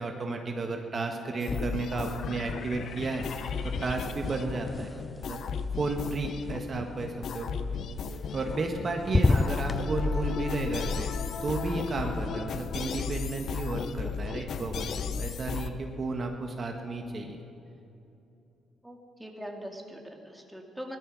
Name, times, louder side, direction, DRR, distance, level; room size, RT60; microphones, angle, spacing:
voice 1, 0.0-4.9 5.3-5.4 5.8-7.7 8.3-11.1 11.4-17.4, right 3 dB, 40° right, 3 dB, 1.4 m, -33 dB
sound 1, 1.4-15.7, left 6 dB, 65° left, 0.7 m, -35 dB
sound 2, 1.4-2.1 2.4-6.5 8.1-8.8 9.0-9.8, left 3 dB, 20° left, 0.5 m, -31 dB
voice 2, 18.8-21.0, equal, 5° right, 1 dB, 2.2 m, -42 dB
17.0 x 12.5 x 6.2 m, 2.8 s
cardioid pair, 90°, 0 cm